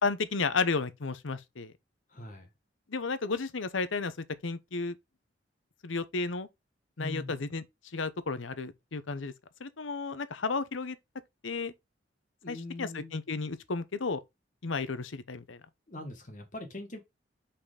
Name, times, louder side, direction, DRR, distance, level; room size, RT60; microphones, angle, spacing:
voice 1, 0.0-1.7 2.9-4.1 4.4-4.9 5.8-6.5 7.0-7.6 7.9-9.3 9.6-11.0 11.4-11.7 12.5-14.2 14.6-15.6, left 4 dB, 85° left, 0.8 m, -32 dB
voice 2, 2.1-2.5 7.0-7.4 12.4-13.2 15.9-17.0, left 1 dB, 40° left, 1.3 m, -42 dB
5.6 x 4.3 x 4.9 m
head